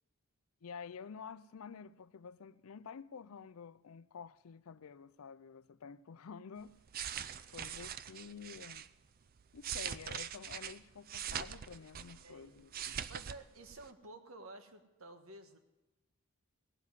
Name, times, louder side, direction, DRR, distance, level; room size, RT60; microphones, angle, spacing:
voice 1, 0.6-6.8 7.5-8.9 9.5-13.1, left 6 dB, 75° left, 0.5 m, -50 dB
sound 1, 6.7-8.9 9.4-12.3 12.6-13.4 13.7-13.9, right 9 dB, 40° right, 0.4 m, -42 dB
voice 2, 12.2-12.6 13.1-15.6, right 2 dB, 70° right, 1.4 m, -52 dB
17.0 x 7.5 x 9.5 m
head